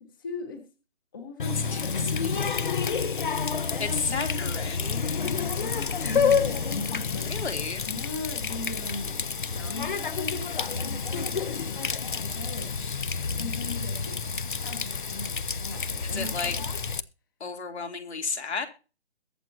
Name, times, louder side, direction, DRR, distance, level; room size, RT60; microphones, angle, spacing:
voice 1, 0.0-0.7 1.1-2.8 4.1-4.2 5.1-7.5 7.8-13.0 13.3-14.2 14.6-16.7, left 3 dB, 20° left, 8 dB, 0.9 m, -40 dB
Water tap faucet, 1.4-17.0, left 5 dB, 45° left, 0.6 m, -29 dB
voice 2, 1.7-2.5 3.8-5.1 7.3-7.9 16.0-16.5 17.4-18.7, left 4 dB, 65° left, 5 dB, 2.9 m, -33 dB
22.0 x 7.6 x 2.7 m, 0.33 s
hypercardioid pair, 170°, 35 cm